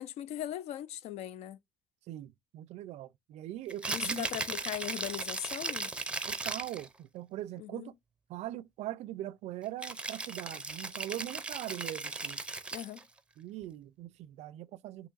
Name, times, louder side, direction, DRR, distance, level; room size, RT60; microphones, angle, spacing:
voice 1, 0.0-1.6 3.9-5.9 7.6-7.9 12.7-13.0, left 12 dB, 70° left, 0.4 m, -39 dB
voice 2, 2.1-4.3 6.3-7.9 8.3-12.4 13.4-15.1, right 14 dB, 70° right, 0.4 m, -41 dB
Rattle (instrument), 3.7-6.9 9.8-13.0, right 3 dB, 10° right, 0.5 m, -37 dB
6.2 x 3.0 x 2.4 m
cardioid pair, 130°, 12 cm